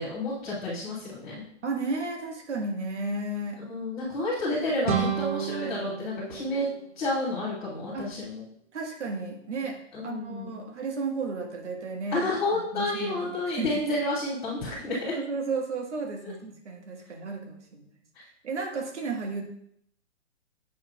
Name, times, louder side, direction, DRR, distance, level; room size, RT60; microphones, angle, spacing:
voice 1, 0.0-1.4 3.6-6.7 6.9-8.4 9.9-10.7 12.1-15.1 16.2-16.3, left 2 dB, 5° left, -14 dB, 0.4 m, -30 dB
voice 2, 1.6-3.6 7.9-8.0 8.7-9.8 10.0-13.7 15.2-17.9 18.4-19.4, right 3 dB, 70° right, 2 dB, 1.6 m, -33 dB
sound 1, 4.8-7.6, right 8 dB, 40° right, 0.8 m, -32 dB
8.2 x 5.4 x 2.3 m, 0.71 s
hypercardioid pair, 160°, 36 cm